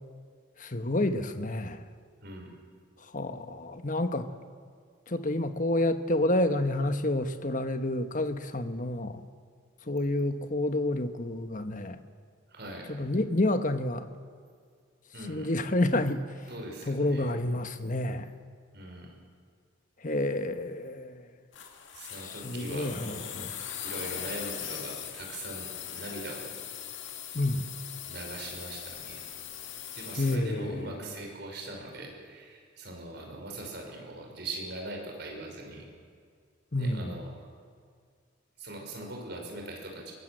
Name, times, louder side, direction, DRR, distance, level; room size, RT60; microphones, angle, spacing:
voice 1, 0.6-1.9 3.0-4.3 5.1-9.2 9.8-12.0 12.9-14.1 15.3-16.5 16.9-18.3 20.0-21.3 22.2-23.5 27.3-27.7 30.1-31.0 36.7-37.2, left 1 dB, 40° left, 9 dB, 1.2 m, -29 dB
voice 2, 2.2-2.5 12.5-12.9 15.1-15.5 16.5-17.3 18.7-19.2 21.9-23.3 23.8-26.5 28.0-29.2 29.9-35.9 36.8-37.3 38.6-40.1, right 2 dB, 55° right, 0 dB, 5.8 m, -41 dB
sound 1, 21.5-30.4, left 10 dB, 70° left, 2.1 m, -40 dB
23.5 x 21.5 x 7.9 m, 2.1 s
head